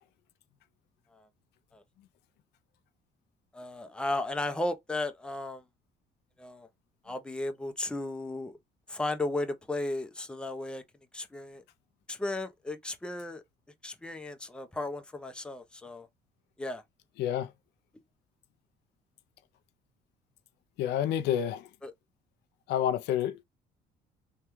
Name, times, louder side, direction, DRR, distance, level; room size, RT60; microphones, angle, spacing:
voice 1, 3.5-5.6 6.4-6.7 7.0-8.5 8.9-10.8 11.1-11.6 12.1-13.4 13.8-16.1 16.6-16.8 21.8-21.9, left 2 dB, 5° left, 0.5 m, -35 dB
voice 2, 17.2-17.5 20.8-21.7 22.7-23.4, left 10 dB, 80° left, 0.5 m, -29 dB
3.4 x 2.3 x 3.0 m
cardioid pair, 110°, 17 cm